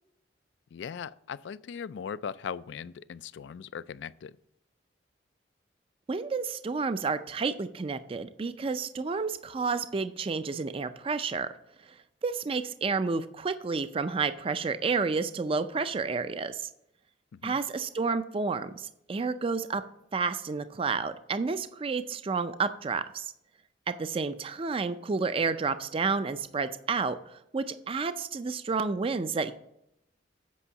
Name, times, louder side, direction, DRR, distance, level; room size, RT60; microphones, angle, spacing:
voice 1, 0.7-4.3 17.4-17.6, left 7 dB, 75° left, 17 dB, 0.3 m, -39 dB
voice 2, 6.1-11.5 12.2-16.7 17.4-19.8 20.1-23.3 23.9-29.5, right 4 dB, 30° right, 12 dB, 0.4 m, -30 dB
8.4 x 5.5 x 7.0 m, 0.79 s
head